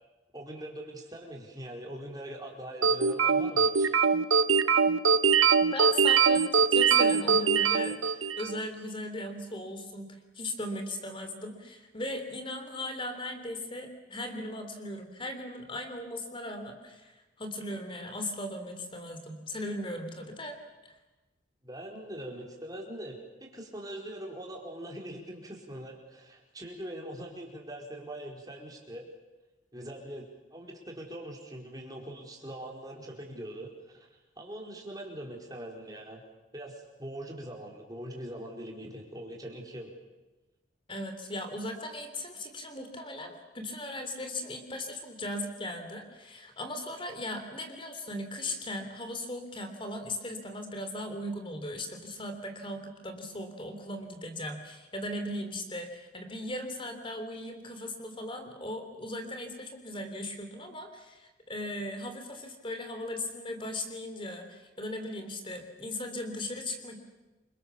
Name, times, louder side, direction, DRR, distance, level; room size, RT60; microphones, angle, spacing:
voice 1, 0.3-4.0 21.6-29.1 29.7-34.1 34.4-36.2 36.5-39.9, right 1 dB, 20° right, 0 dB, 4.6 m, -42 dB
sound 1, 2.8-8.6, right 5 dB, 90° right, 0.9 m, -23 dB
voice 2, 5.7-20.6 20.8-20.9 40.9-67.0, left 1 dB, 25° left, 7 dB, 3.4 m, -38 dB
28.5 x 25.0 x 7.1 m, 1.1 s
head